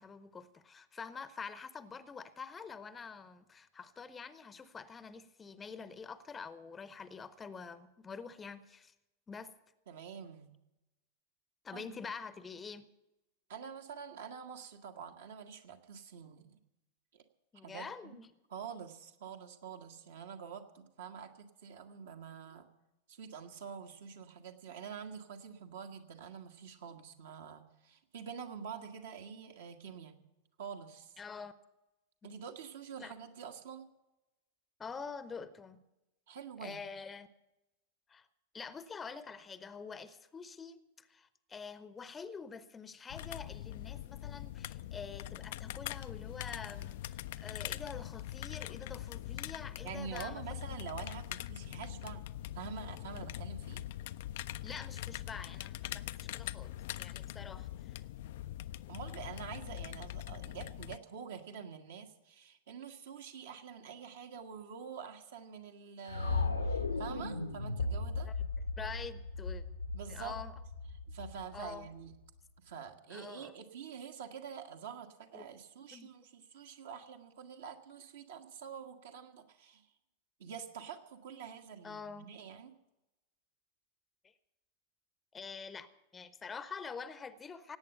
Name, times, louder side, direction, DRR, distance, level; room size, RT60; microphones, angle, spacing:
voice 1, 0.0-8.9 9.3-9.5 11.6-12.9 17.5-18.3 31.2-31.5 32.2-32.3 33.0-33.1 34.8-35.8 36.6-37.3 38.1-38.3 38.5-50.4 50.7-50.8 54.6-58.0 68.2-68.4 68.8-69.6 70.1-70.5 71.5-71.9 73.1-73.5 75.3-75.5 75.9-76.1 81.8-82.3 84.2-84.3 85.3-87.8, left 5 dB, 20° left, 0.8 m, -46 dB
voice 2, 9.9-10.5 11.7-11.9 13.5-16.6 17.1-17.2 17.6-18.2 18.5-22.7 23.1-30.2 30.6-31.1 32.2-33.9 36.3-36.9 49.8-52.3 52.5-53.9 58.9-68.3 69.9-70.4 71.1-72.1 72.6-79.9 80.4-82.7, right 7 dB, 60° right, 1.5 m, -47 dB
sound 1, 43.1-61.0, left 13 dB, 55° left, 0.4 m, -43 dB
sound 2, 66.1-72.2, left 3 dB, 80° left, 1.0 m, -36 dB
18.0 x 8.7 x 7.9 m
figure-of-eight pair, 90°, 0 cm